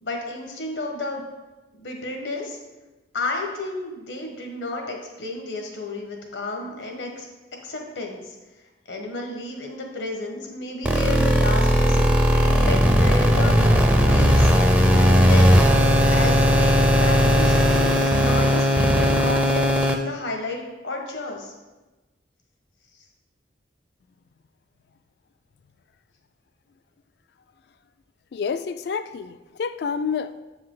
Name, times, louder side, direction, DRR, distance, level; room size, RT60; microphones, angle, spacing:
voice 1, 0.0-1.2 1.8-2.6 3.1-7.3 7.6-8.3 8.9-13.7 14.1-14.5 15.0-15.8 16.1-17.5 18.0-21.5, left 2 dB, 90° left, 1 dB, 1.3 m, -32 dB
sound 1, 10.8-19.9, equal, 5° right, 0.4 m, -17 dB
voice 2, 28.3-30.4, left 6 dB, 60° left, 13 dB, 0.3 m, -28 dB
7.5 x 4.7 x 3.8 m, 1.1 s
head